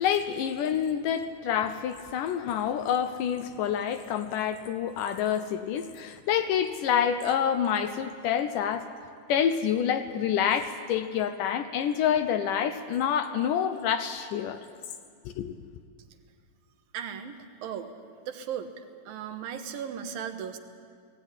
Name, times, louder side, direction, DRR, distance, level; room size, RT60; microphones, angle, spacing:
voice 1, 0.0-8.9 9.3-14.7 15.4-15.5, left 8 dB, 75° left, 10 dB, 2.0 m, -27 dB
voice 2, 16.9-17.4 17.6-17.9 18.3-18.7 19.1-20.6, right 8 dB, 75° right, 7 dB, 2.8 m, -36 dB
17.5 x 17.0 x 9.8 m, 2.2 s
omnidirectional pair, 4.2 m